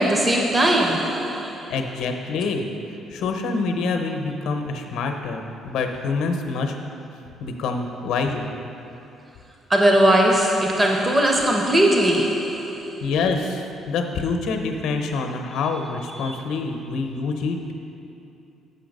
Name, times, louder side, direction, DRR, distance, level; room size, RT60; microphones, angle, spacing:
voice 1, 0.0-1.7 9.7-13.1 16.2-16.3, right 1 dB, 15° right, 1 dB, 0.4 m, -20 dB
voice 2, 1.7-2.7 3.1-6.8 7.4-8.5 13.0-17.6, left 4 dB, 70° left, 4 dB, 0.7 m, -26 dB
6.8 x 5.8 x 5.2 m, 2.8 s
cardioid pair, 180°, 0 cm